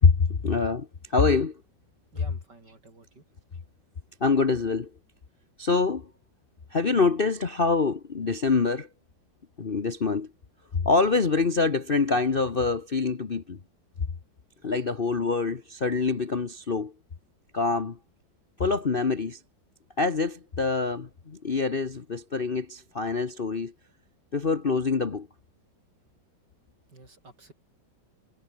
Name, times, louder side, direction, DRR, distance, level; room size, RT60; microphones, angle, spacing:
voice 1, 0.0-1.6 4.2-4.9 5.6-6.1 6.7-8.9 9.6-10.3 10.7-13.6 14.6-16.9 17.5-18.0 18.6-19.4 20.0-23.7 24.3-25.3, left 4 dB, 35° left, 1.1 m, -25 dB
voice 2, 2.1-3.3 26.9-27.5, right 3 dB, 55° right, 6.1 m, -51 dB
omnidirectional pair, 2.2 m